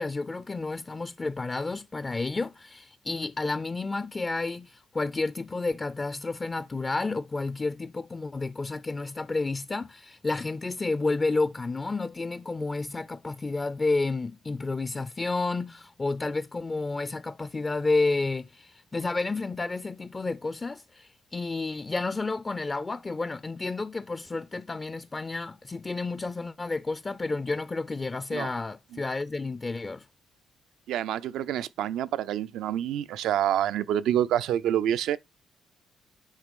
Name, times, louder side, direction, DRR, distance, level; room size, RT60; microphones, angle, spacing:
voice 1, 0.0-30.1, left 3 dB, 25° left, 0.4 m, -31 dB
voice 2, 30.9-35.2, right 11 dB, 85° right, 0.4 m, -27 dB
9.0 x 3.2 x 5.2 m
cardioid pair, 90°, 0 cm